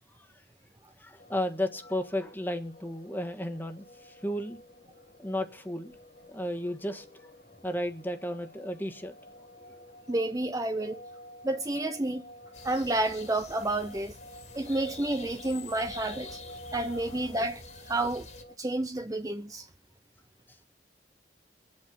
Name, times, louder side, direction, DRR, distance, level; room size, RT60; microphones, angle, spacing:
voice 1, 1.0-4.6 5.2-5.9 6.3-7.1 7.6-9.1, left 1 dB, 10° left, 1.6 m, -33 dB
sound 1, 1.2-18.5, left 1 dB, 55° left, 1.6 m, -50 dB
voice 2, 10.1-11.0 11.4-12.3 12.6-14.2 14.5-18.3 18.6-19.7, right 2 dB, 20° right, 0.7 m, -30 dB
sound 2, 12.5-18.4, left 4 dB, 40° left, 2.3 m, -47 dB
24.0 x 8.8 x 5.5 m
head